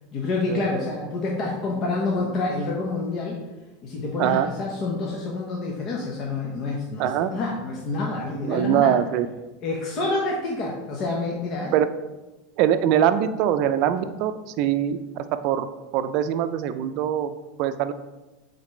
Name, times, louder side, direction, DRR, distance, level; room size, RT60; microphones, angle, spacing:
voice 1, 0.1-3.4 3.8-8.9 9.6-11.7, left 3 dB, 45° left, -2 dB, 1.2 m, -28 dB
voice 2, 7.0-7.3 8.5-9.3 11.7-11.9 12.6-14.3 14.6-15.0 15.3-15.7 15.9-17.3 17.6-17.9, right 10 dB, 55° right, 11 dB, 0.5 m, -22 dB
8.3 x 4.0 x 3.2 m, 1.1 s
hypercardioid pair, 105°, 0 cm